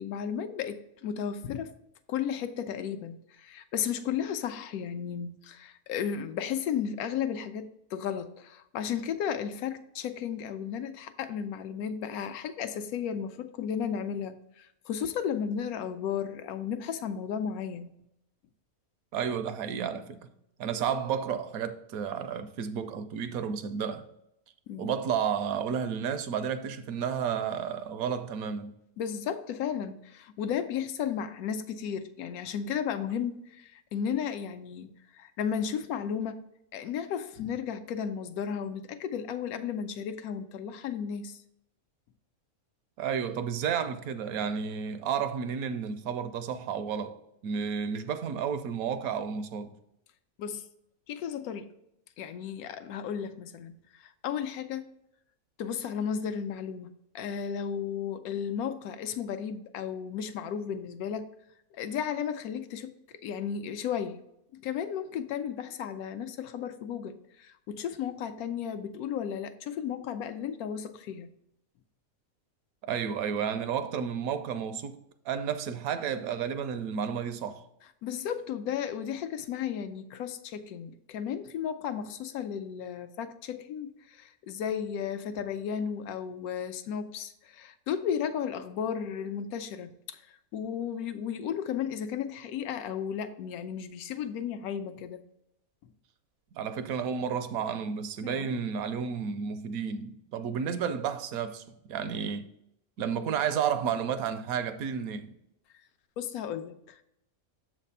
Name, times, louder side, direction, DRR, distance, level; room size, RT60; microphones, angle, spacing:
voice 1, 0.0-1.7 2.1-17.9 24.7-25.0 29.0-36.4 36.7-41.4 50.4-50.7 51.1-51.7 52.2-54.9 55.6-61.3 61.7-64.2 64.5-71.3 78.0-95.2 98.2-98.5 106.2-107.0, left 8 dB, 80° left, 1.0 m, -34 dB
voice 2, 19.1-20.3 20.6-24.1 24.8-28.7 43.0-47.2 47.4-49.7 72.8-75.0 75.3-77.6 96.5-102.5 103.0-105.3, right 7 dB, 80° right, 1.0 m, -32 dB
7.2 x 3.3 x 5.4 m
omnidirectional pair, 1.5 m